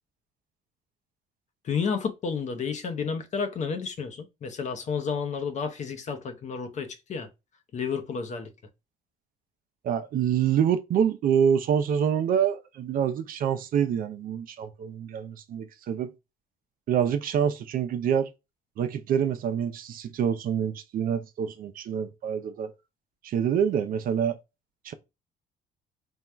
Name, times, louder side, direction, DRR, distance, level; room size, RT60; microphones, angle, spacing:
voice 1, 1.6-7.3 7.7-8.5, left 6 dB, 45° left, 0.7 m, -31 dB
voice 2, 9.8-16.1 16.9-18.3 18.8-22.7 23.2-24.4 24.8-24.9, right 8 dB, 60° right, 0.6 m, -26 dB
3.5 x 2.3 x 4.3 m
cardioid pair, 110°, 17 cm